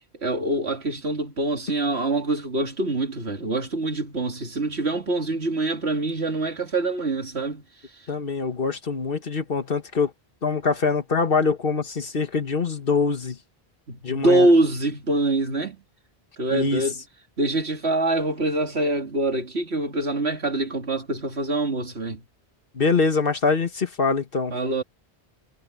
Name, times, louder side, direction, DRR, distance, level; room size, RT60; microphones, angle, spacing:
voice 1, 0.2-7.6 13.9-15.8 16.4-17.0 17.4-22.2 24.5-24.8, right 2 dB, 85° right, 2.8 m, -24 dB
voice 2, 8.1-10.1 10.4-13.4 14.0-14.5 16.5-16.9 22.7-24.6, left 4 dB, 60° left, 1.7 m, -24 dB
omnidirectional pair, 1.1 m